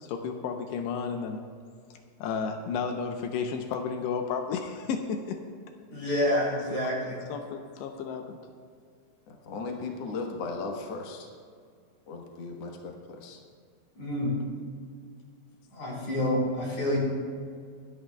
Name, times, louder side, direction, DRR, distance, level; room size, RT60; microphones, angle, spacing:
voice 1, 0.0-1.4 2.2-5.4 7.3-8.4, left 6 dB, 85° left, 4 dB, 2.9 m, -32 dB
voice 2, 5.9-7.2 14.0-14.4 15.7-17.0, left 1 dB, 45° left, -5 dB, 5.1 m, -28 dB
voice 3, 9.3-11.3 12.1-13.4, left 3 dB, 70° left, 1 dB, 1.6 m, -37 dB
26.0 x 11.0 x 2.3 m, 2.1 s
omnidirectional pair, 4.8 m